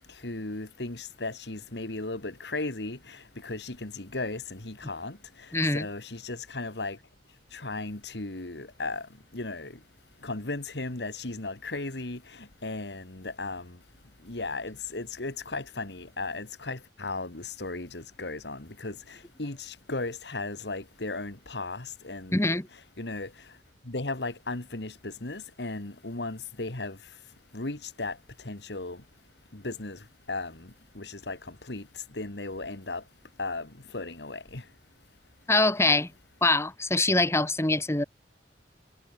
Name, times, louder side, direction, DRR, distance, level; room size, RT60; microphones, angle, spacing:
voice 1, 0.1-7.0 7.5-9.8 10.2-13.8 14.2-22.4 22.7-23.5 23.8-27.0 27.5-29.0 29.5-33.0 33.4-34.7, left 3 dB, 70° left, 2.1 m, -36 dB
voice 2, 5.5-5.9 22.3-22.7 35.5-36.1 36.4-38.0, left 2 dB, 15° left, 1.5 m, -24 dB
head